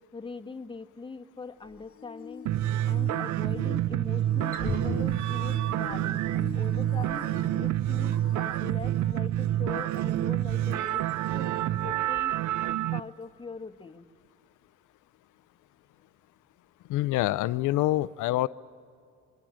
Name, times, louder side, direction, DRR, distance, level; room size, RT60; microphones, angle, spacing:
voice 1, 0.1-2.4 2.8-7.3 7.6-11.0 11.3-12.3 12.9-14.1, left 4 dB, 15° left, 5 dB, 1.4 m, -42 dB
sound 1, 1.6-9.3 10.0-10.1 11.1-11.2, left 9 dB, 50° left, 0.9 m, -46 dB
sound 2, 2.5-13.0, right 13 dB, 75° right, 0.5 m, -28 dB
Wild animals, 4.2-12.7, left 1 dB, 30° right, 4.7 m, -43 dB
voice 2, 16.9-18.5, left 16 dB, 85° left, 14 dB, 0.5 m, -26 dB
28.0 x 23.0 x 6.2 m, 2.4 s
cardioid pair, 90°, 30 cm